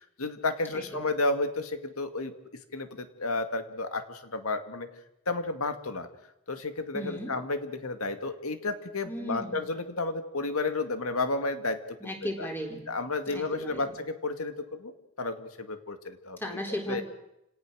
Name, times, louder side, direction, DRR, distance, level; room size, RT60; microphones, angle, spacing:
voice 1, 0.2-2.3 2.7-4.9 5.3-6.1 6.5-12.1 12.4-12.5 12.9-14.9 15.2-16.6 16.9-17.0, left 3 dB, 85° left, 7 dB, 2.2 m, -32 dB
voice 2, 0.7-1.1 6.9-7.3 9.1-9.6 12.0-12.9 13.3-13.9 16.4-17.0, equal, 10° left, 2 dB, 3.9 m, -36 dB
29.5 x 18.5 x 6.4 m, 0.84 s
head